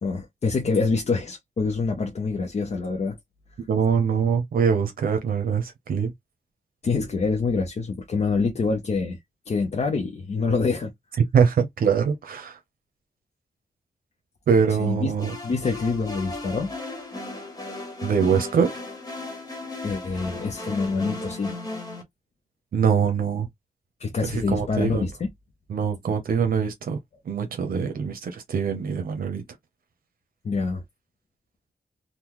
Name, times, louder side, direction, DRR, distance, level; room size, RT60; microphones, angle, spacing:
voice 1, 0.0-3.2 6.8-9.2 9.5-10.9 14.8-15.1 15.4-16.7 19.8-21.6 24.0-25.3 30.4-30.8, left 4 dB, 50° left, 0.6 m, -26 dB
voice 2, 3.7-6.1 11.3-12.6 14.5-15.3 18.0-18.7 22.7-23.5 24.2-25.1 25.7-27.0 27.3-29.4, right 6 dB, 85° right, 0.7 m, -23 dB
sound 1, 15.2-22.0, left 2 dB, 25° left, 1.2 m, -36 dB
3.7 x 2.2 x 3.0 m
wide cardioid pair, 150°, 15 cm